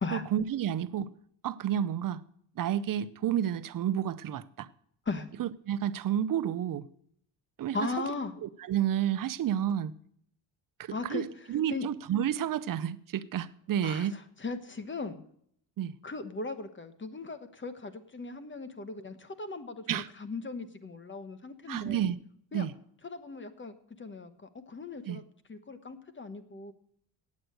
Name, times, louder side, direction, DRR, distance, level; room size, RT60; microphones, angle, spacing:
voice 1, 0.1-1.1 1.4-2.2 2.6-4.7 5.4-6.9 7.6-7.8 8.4-9.9 10.8-11.2 11.5-14.1 15.8-15.9 19.9-20.1 21.7-22.2 22.5-22.7 25.1-25.2, right 10 dB, 50° right, 0.6 m, -30 dB
voice 2, 7.7-8.3 10.9-11.9 13.8-15.2 16.0-22.0 22.5-22.7 23.0-25.2 25.5-26.7, left 3 dB, 25° left, 1.1 m, -38 dB
8.9 x 8.6 x 7.9 m
cardioid pair, 100°, 43 cm